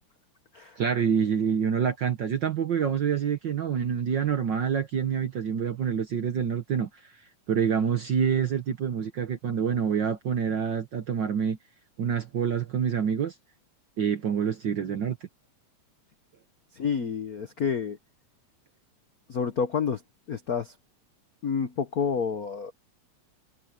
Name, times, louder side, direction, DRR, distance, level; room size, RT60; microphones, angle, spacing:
voice 1, 0.8-6.9 7.5-11.6 12.0-13.3 14.0-15.2, right 7 dB, 60° right, 1.3 m, -27 dB
voice 2, 16.8-18.0 19.3-20.0 20.3-20.7 21.4-22.7, left 6 dB, 75° left, 0.8 m, -29 dB
omnidirectional pair, 3.3 m